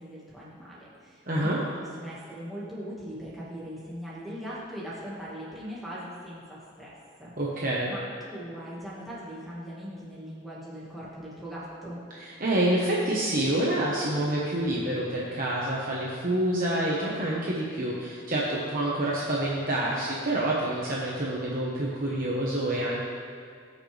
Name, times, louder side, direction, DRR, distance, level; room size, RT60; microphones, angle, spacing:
voice 1, 0.0-7.3 7.9-12.0, equal, ahead, -8 dB, 1.8 m, -40 dB
voice 2, 1.3-1.6 7.4-7.9 12.1-23.0, right 1 dB, 45° right, -5 dB, 1.2 m, -27 dB
18.5 x 6.5 x 3.4 m, 2.2 s
head